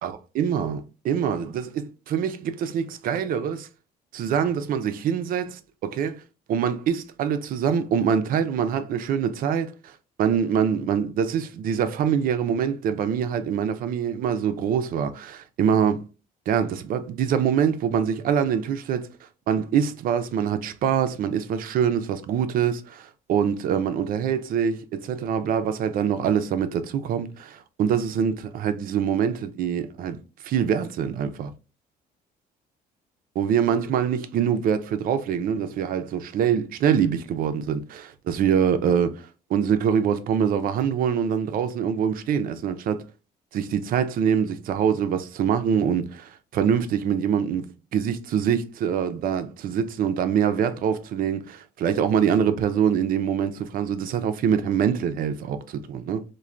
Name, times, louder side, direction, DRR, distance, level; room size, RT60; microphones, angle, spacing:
voice 1, 0.0-3.7 4.1-6.2 6.5-9.9 10.2-16.0 16.5-19.1 19.5-31.5 33.4-43.0 43.5-56.2, right 8 dB, 60° right, 0.4 m, -24 dB
3.2 x 2.2 x 2.4 m
cardioid pair, 110°, 17 cm